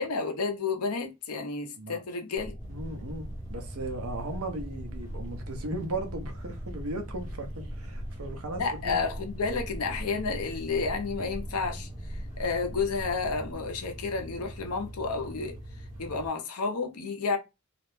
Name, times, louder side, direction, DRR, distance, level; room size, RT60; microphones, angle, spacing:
voice 1, 0.0-2.5 8.6-15.6 16.0-17.4, left 4 dB, 80° left, 0.6 m, -31 dB
sound 1, 2.3-13.5, equal, 10° left, 0.6 m, -41 dB
sound 2, 2.6-16.3, right 1 dB, 35° right, 0.9 m, -43 dB
voice 2, 2.7-9.0, right 2 dB, 70° right, 0.7 m, -37 dB
2.4 x 2.0 x 3.0 m
head